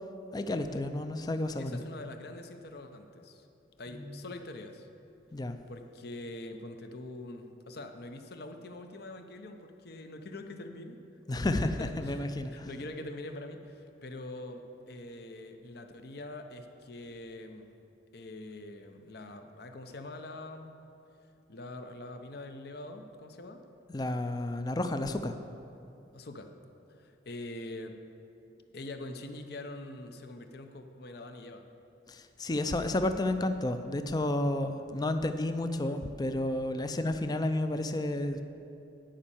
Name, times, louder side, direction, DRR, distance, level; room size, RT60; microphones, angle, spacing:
voice 1, 0.3-1.8 3.9-4.1 5.3-5.6 11.3-11.7 12.0-12.7 23.9-25.3 32.1-38.4, left 1 dB, 20° left, 8 dB, 0.4 m, -31 dB
voice 2, 1.6-3.5 3.8-4.9 5.7-11.0 11.3-17.7 18.1-20.8 21.5-23.6 25.1-25.3 26.1-26.5 26.9-28.0 28.7-31.6, left 2 dB, 60° left, 6 dB, 0.8 m, -44 dB
10.0 x 5.4 x 8.4 m, 2.8 s
head